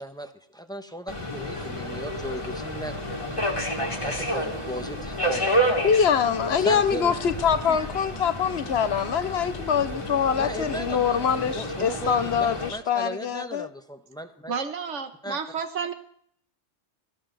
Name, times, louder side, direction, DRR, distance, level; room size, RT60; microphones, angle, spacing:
voice 1, 0.0-2.9 4.0-5.6 6.6-7.2 7.6-7.8 10.4-11.2 11.5-14.5 15.2-15.4, right 1 dB, 5° left, 1.1 m, -36 dB
Subway metro underground, 1.1-12.7, equal, 25° left, 2.1 m, -30 dB
voice 2, 5.8-13.7, left 7 dB, 65° left, 1.0 m, -24 dB
voice 3, 14.5-15.9, right 6 dB, 85° right, 1.5 m, -31 dB
17.5 x 13.5 x 4.0 m
omnidirectional pair, 1.2 m